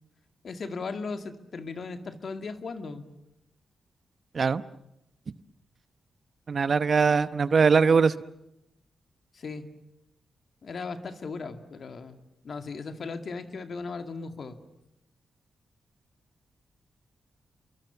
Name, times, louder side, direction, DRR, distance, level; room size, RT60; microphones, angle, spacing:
voice 1, 0.4-3.0 9.3-9.7 10.6-12.2 12.4-14.6, left 4 dB, 60° left, 8 dB, 2.2 m, -37 dB
voice 2, 6.5-8.1, right 5 dB, 55° right, 15 dB, 0.9 m, -21 dB
29.5 x 23.0 x 7.2 m, 0.84 s
supercardioid pair, 50°, 0 cm